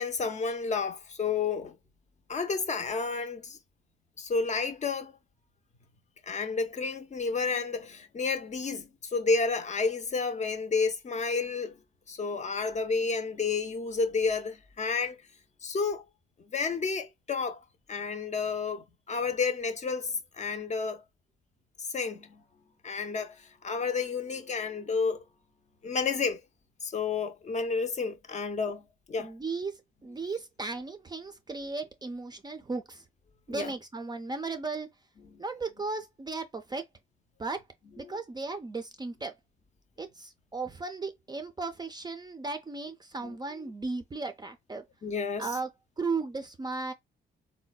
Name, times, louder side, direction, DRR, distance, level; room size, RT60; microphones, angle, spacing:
voice 1, 0.0-1.8 2.3-3.6 4.2-5.1 6.3-11.8 12.1-15.2 15.6-16.0 16.5-17.6 17.9-21.0 21.9-22.4 22.8-25.2 25.8-26.4 26.8-29.3 33.5-33.7 35.3-35.4 43.2-43.3 45.0-45.5, left 4 dB, 35° left, 0.6 m, -31 dB
voice 2, 29.2-33.0 33.5-34.9 35.4-36.9 37.4-37.6 38.0-39.4 40.0-44.9 45.4-45.7 46.0-46.9, right 3 dB, 20° right, 0.4 m, -36 dB
3.7 x 2.1 x 2.2 m
cardioid pair, 90°, 20 cm